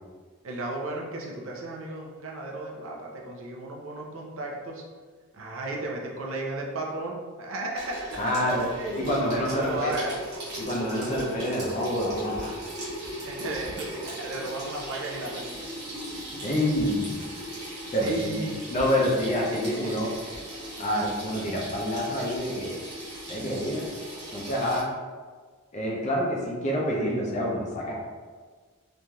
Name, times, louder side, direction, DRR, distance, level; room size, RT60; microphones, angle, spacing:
voice 1, 0.4-4.8 5.3-8.3 8.7-10.4 13.2-15.7 18.0-18.5 19.7-20.7, right 2 dB, 65° right, -1 dB, 0.5 m, -34 dB
Water tap faucet / Sink (filling or washing), 7.8-24.8, equal, 50° right, 1.0 m, -38 dB
voice 2, 8.2-8.7 8.9-9.9 10.6-12.6 16.4-17.2 17.9-18.4 18.7-20.1 20.8-22.8 23.3-23.9 24.3-24.9 25.7-27.9, equal, 35° left, -3 dB, 0.5 m, -27 dB
3.1 x 2.6 x 2.3 m, 1.5 s
head